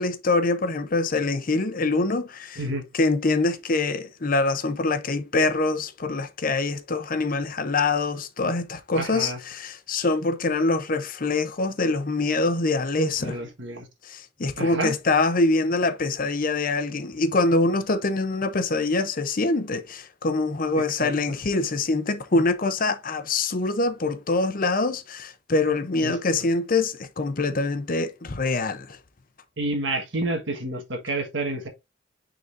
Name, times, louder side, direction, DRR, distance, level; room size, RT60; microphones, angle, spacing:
voice 1, 0.0-2.6 2.9-13.4 14.0-29.0, left 3 dB, 45° left, 0.7 m, -24 dB
voice 2, 8.9-9.4 13.2-13.9 14.6-15.0 20.8-21.4 26.0-26.2 29.6-31.7, right 2 dB, 65° right, 1.6 m, -29 dB
9.4 x 3.9 x 2.6 m
head